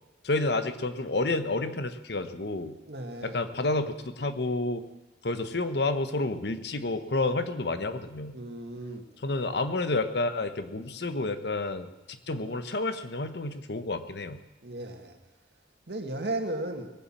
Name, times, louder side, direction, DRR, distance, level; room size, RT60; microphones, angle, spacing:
voice 1, 0.2-2.8 3.2-4.8 5.2-8.4 9.2-11.9 12.3-14.4, left 2 dB, 70° left, 10 dB, 1.0 m, -30 dB
voice 2, 2.9-3.4 8.3-9.0 14.6-15.2 15.9-16.9, right 1 dB, 70° right, 4 dB, 1.8 m, -35 dB
20.0 x 8.5 x 7.4 m, 1.0 s
head